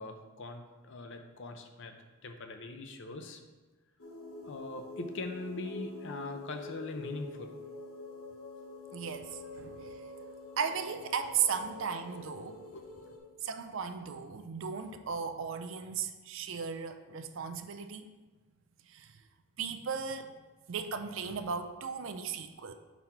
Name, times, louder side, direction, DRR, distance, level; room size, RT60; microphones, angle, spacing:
voice 1, 0.0-2.0 2.2-3.4 4.4-7.5 12.7-13.2, left 2 dB, 55° left, 6 dB, 0.5 m, -41 dB
sound 1, 4.0-13.2, left 2 dB, 75° left, 1.0 m, -46 dB
voice 2, 8.9-10.0 10.6-12.6 13.4-18.1 18.9-19.1 19.6-20.3 20.7-22.7, right 6 dB, 55° right, 8 dB, 0.4 m, -36 dB
4.4 x 4.1 x 5.5 m, 1.2 s
head